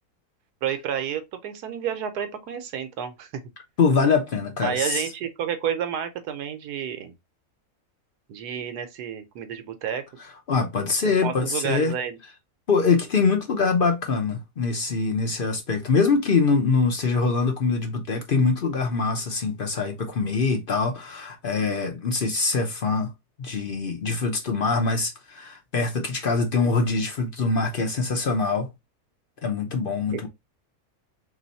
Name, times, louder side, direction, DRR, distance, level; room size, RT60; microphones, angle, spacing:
voice 1, 0.6-3.3 4.6-7.1 8.3-10.0 11.0-12.2 30.1-30.2, right 8 dB, 85° right, 1.3 m, -30 dB
voice 2, 3.8-5.0 10.5-11.9 12.7-23.1 23.4-28.7 29.4-30.3, left 4 dB, 55° left, 0.6 m, -24 dB
3.1 x 3.0 x 4.0 m
omnidirectional pair, 1.7 m